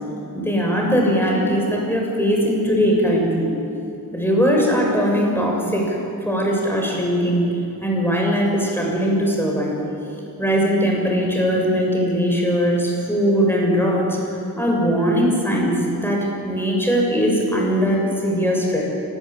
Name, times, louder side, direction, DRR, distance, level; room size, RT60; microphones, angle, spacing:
voice 1, 0.3-3.5 4.1-6.0 6.2-7.5 7.8-9.7 10.4-14.2 14.6-18.8, equal, 5° left, -1 dB, 6.8 m, -20 dB
25.0 x 15.5 x 8.9 m, 2.8 s
cardioid pair, 50°, 38 cm